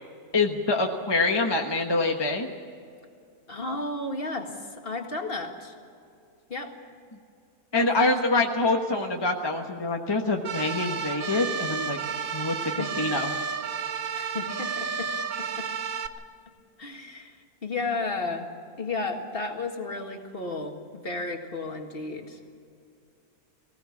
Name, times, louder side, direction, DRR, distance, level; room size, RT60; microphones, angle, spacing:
voice 1, 0.3-2.5 7.7-12.0 12.3-13.3, left 3 dB, 20° left, 2 dB, 1.2 m, -25 dB
voice 2, 3.5-5.7 6.5-6.7 7.7-8.1 8.6-8.8 12.6-13.1 14.1-15.1 15.4-15.7 16.8-18.5 18.8-22.4, left 3 dB, 40° left, 3 dB, 2.0 m, -33 dB
sound 1, 10.4-16.1, right 6 dB, 65° right, 1.4 m, -31 dB
20.0 x 16.5 x 8.3 m, 2.4 s
omnidirectional pair, 1.6 m